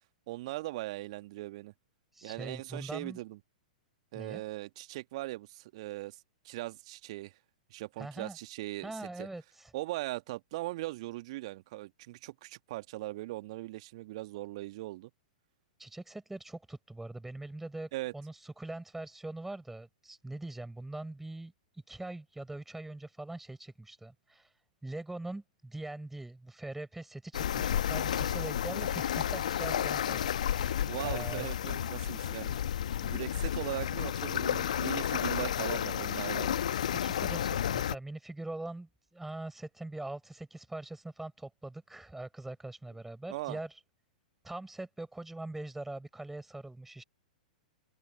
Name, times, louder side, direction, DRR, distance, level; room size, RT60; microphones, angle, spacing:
voice 1, 0.3-1.7 2.2-3.4 4.1-6.2 6.4-7.3 7.7-8.9 9.2-9.3 9.7-15.1 17.9-18.1 29.7-29.9 30.8-32.6 33.0-36.6 43.3-43.6, right 18 dB, 45° right, 1.8 m, -39 dB
voice 2, 2.1-3.2 4.1-4.4 8.0-8.4 8.8-9.7 15.8-31.5 36.9-43.8 44.4-47.0, right 2 dB, 5° right, 7.0 m, -42 dB
sound 1, 27.3-37.9, left 10 dB, 60° left, 1.3 m, -32 dB
figure-of-eight pair, 105°, 4 cm